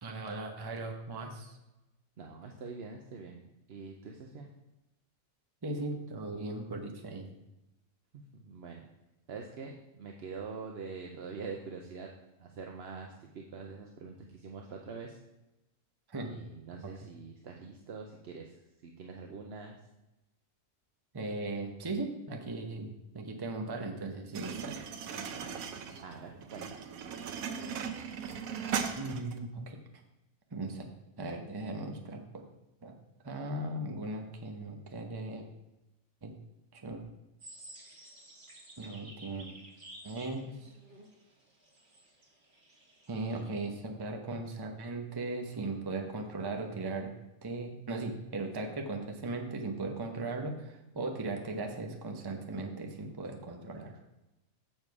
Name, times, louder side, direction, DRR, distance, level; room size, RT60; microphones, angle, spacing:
voice 1, 0.0-1.5 5.6-7.3 16.1-16.3 16.8-17.1 21.1-24.7 25.1-25.5 25.9-26.0 28.9-29.8 30.5-30.8 31.2-32.2 32.8-32.9 33.2-35.4 36.2-36.3 36.7-37.0 38.8-39.5 40.0-40.7 43.1-47.1 47.4-54.0, right 2 dB, 20° right, 3 dB, 0.8 m, -38 dB
voice 2, 2.2-3.4 3.7-4.5 8.1-8.8 9.3-12.1 12.4-15.2 16.2-18.6 18.8-19.7 26.0-26.9, right 4 dB, 55° right, 1 dB, 0.9 m, -44 dB
sound 1, 24.3-29.4, right 7 dB, 85° right, 1.2 m, -38 dB
sound 2, 37.4-43.5, right 1 dB, 35° right, 1.5 m, -53 dB
7.6 x 7.1 x 4.7 m, 0.96 s
omnidirectional pair, 1.4 m